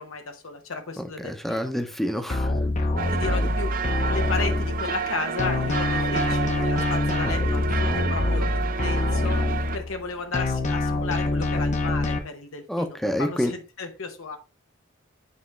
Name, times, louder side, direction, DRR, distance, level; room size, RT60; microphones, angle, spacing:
voice 1, 0.0-1.7 3.1-3.7 4.1-9.4 9.7-14.4, left 4 dB, 85° left, 5 dB, 1.0 m, -34 dB
voice 2, 1.0-2.5 12.7-13.5, equal, ahead, 6 dB, 0.7 m, -28 dB
sound 1, 2.3-5.1 5.4-10.0 10.3-12.2, left 2 dB, 35° left, 0.8 m, -25 dB
sound 2, 3.0-9.8, right 5 dB, 45° right, 0.4 m, -30 dB
9.5 x 3.6 x 3.2 m, 0.32 s
head